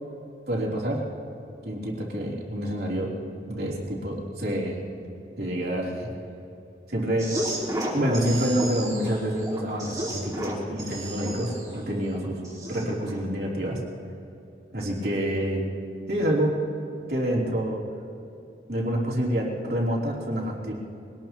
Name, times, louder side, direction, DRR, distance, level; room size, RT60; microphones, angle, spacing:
voice 1, 0.5-1.0 1.6-3.1 3.5-4.8 5.4-6.1 6.9-7.3 7.9-12.4 12.7-13.8 14.7-15.6 16.1-16.6 17.1-17.8 18.7-20.7, equal, 60° right, -4 dB, 3.4 m, -27 dB
sound 1, 7.2-13.2, right 1 dB, 20° right, 3.2 m, -33 dB
24.0 x 19.0 x 3.1 m, 2.7 s
head